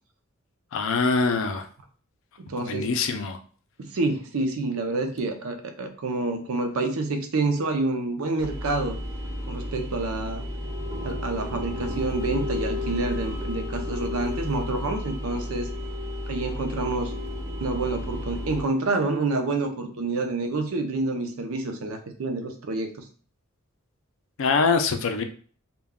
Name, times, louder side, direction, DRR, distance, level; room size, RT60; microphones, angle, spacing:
voice 1, 0.7-1.7 2.6-3.4 24.4-25.2, left 4 dB, 65° left, 6 dB, 0.4 m, -24 dB
voice 2, 2.4-2.9 3.8-9.0 9.5-10.5 11.0-15.7 16.3-17.1 17.6-23.0, right 3 dB, 75° right, 6 dB, 0.5 m, -28 dB
sound 1, 8.4-18.6, left 1 dB, 10° right, 0.5 m, -32 dB
2.2 x 2.2 x 3.5 m, 0.43 s
head